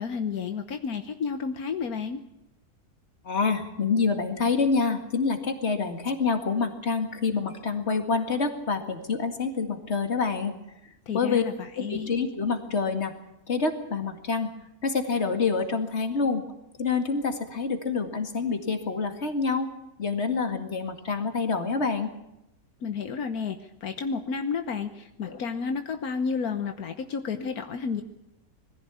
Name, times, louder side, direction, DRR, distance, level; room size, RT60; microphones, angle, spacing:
voice 1, 0.0-2.2 11.1-12.1 22.8-28.0, left 5 dB, 80° left, 7 dB, 1.5 m, -31 dB
voice 2, 3.3-10.5 11.1-11.4 11.8-13.1 13.5-14.5 14.8-16.4 16.8-19.7 20.0-22.1, left 4 dB, 45° left, 6 dB, 2.3 m, -27 dB
21.0 x 15.0 x 8.3 m, 0.88 s
omnidirectional pair, 1.6 m